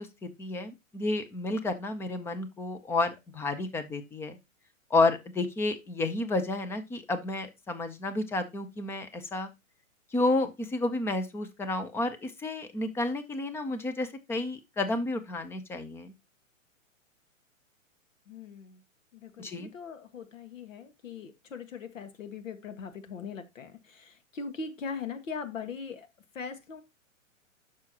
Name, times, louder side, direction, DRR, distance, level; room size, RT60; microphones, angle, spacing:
voice 1, 0.0-4.4 4.9-9.5 10.1-16.1 19.4-19.7, left 2 dB, 5° left, 9 dB, 0.5 m, -31 dB
voice 2, 18.3-18.8 19.1-26.1 26.4-26.8, left 5 dB, 70° left, 9 dB, 1.7 m, -40 dB
10.0 x 6.1 x 2.9 m, 0.23 s
hypercardioid pair, 120°, 40 cm